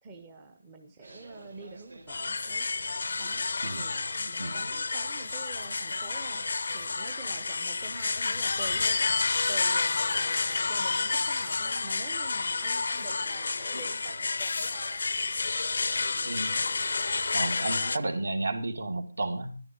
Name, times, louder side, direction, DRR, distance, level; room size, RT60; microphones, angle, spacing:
voice 1, 0.0-2.7 3.2-3.4 3.8-6.4 6.7-14.9, right 3 dB, 10° right, 5 dB, 0.8 m, -46 dB
sound 1, 1.0-18.2, right 2 dB, 75° right, 3.8 m, -50 dB
sound 2, 2.1-18.0, left 4 dB, 50° left, 0.6 m, -30 dB
voice 2, 3.6-4.1 4.4-4.5 16.2-16.6 17.3-19.6, right 2 dB, 60° right, 9 dB, 2.3 m, -32 dB
12.5 x 11.0 x 5.2 m, 0.36 s
figure-of-eight pair, 175°, 0 cm